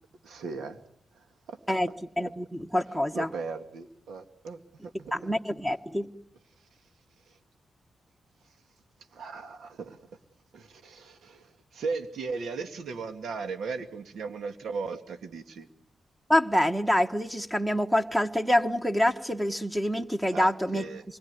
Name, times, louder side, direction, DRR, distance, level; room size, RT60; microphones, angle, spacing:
voice 1, 0.2-0.8 1.1-1.6 2.9-5.1 6.6-6.7 7.3-7.4 8.4-8.5 9.1-10.0 10.5-15.7 20.3-21.0, right 4 dB, 85° right, 7 dB, 2.1 m, -37 dB
voice 2, 2.2-3.3 5.1-6.1 16.3-20.8, left 1 dB, 5° right, 7 dB, 1.4 m, -26 dB
27.0 x 21.5 x 9.6 m, 0.71 s
cardioid pair, 110°, 0 cm